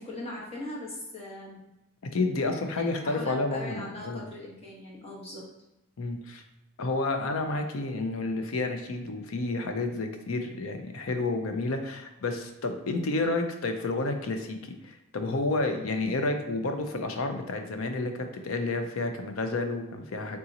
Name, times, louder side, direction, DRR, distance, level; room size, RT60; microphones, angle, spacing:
voice 1, 0.0-1.6 2.7-5.5, left 2 dB, 30° left, -4 dB, 1.0 m, -40 dB
voice 2, 2.1-4.3 6.0-6.4 6.8-20.4, left 2 dB, 90° left, 5 dB, 0.6 m, -30 dB
3.7 x 2.8 x 3.9 m, 0.96 s
head